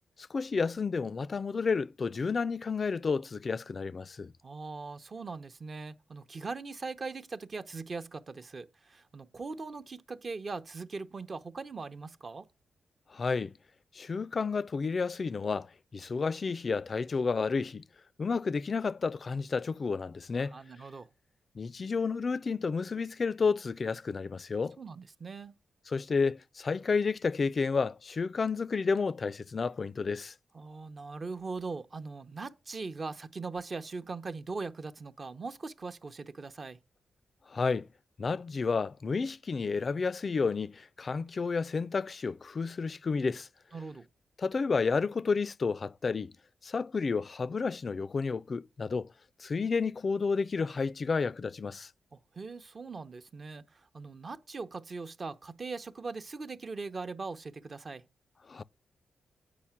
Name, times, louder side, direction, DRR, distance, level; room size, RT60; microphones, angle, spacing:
voice 1, 0.3-4.3 13.1-13.5 13.9-17.9 18.2-20.6 21.6-24.8 25.9-30.3 37.5-37.9 38.2-43.5 44.4-46.3 46.6-49.1 49.4-51.9 58.5-58.6, left 4 dB, 45° left, 0.3 m, -31 dB
voice 2, 4.4-12.5 20.4-21.1 24.8-25.5 30.5-36.8 43.7-44.1 52.1-58.0, right 4 dB, 45° right, 0.7 m, -40 dB
8.5 x 4.9 x 5.9 m
cardioid pair, 75°, 0 cm